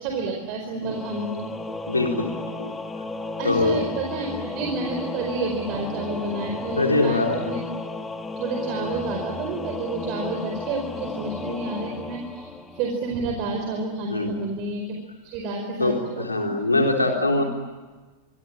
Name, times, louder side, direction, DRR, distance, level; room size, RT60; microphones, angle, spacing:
voice 1, 0.0-1.5 3.4-7.6 8.4-15.0 15.2-16.5 17.4-17.5, right 3 dB, 45° right, 2 dB, 4.8 m, -30 dB
Singing / Musical instrument, 0.8-13.3, left 3 dB, 10° left, 2.5 m, -34 dB
voice 2, 1.9-2.7 3.4-3.8 4.3-4.4 6.8-7.4 14.1-14.5 15.8-17.4, left 2 dB, 80° left, 2 dB, 3.8 m, -23 dB
26.0 x 25.0 x 8.8 m, 1.3 s
figure-of-eight pair, 90°, 0 cm